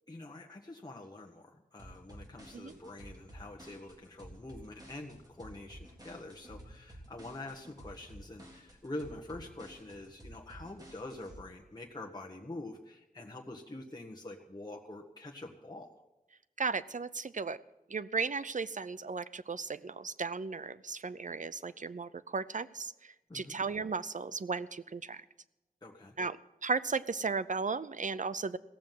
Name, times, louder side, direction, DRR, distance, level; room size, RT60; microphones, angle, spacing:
voice 1, 0.1-15.9 23.3-23.6 25.8-26.2, left 2 dB, 25° left, -1 dB, 1.4 m, -46 dB
sound 1, 1.8-11.4, right 1 dB, 25° right, 3.8 m, -52 dB
voice 2, 16.6-17.6 17.9-25.2 26.2-26.4 26.6-28.6, right 4 dB, 60° right, 15 dB, 0.6 m, -35 dB
16.5 x 7.4 x 9.2 m, 0.98 s
wide cardioid pair, 60°, 15 cm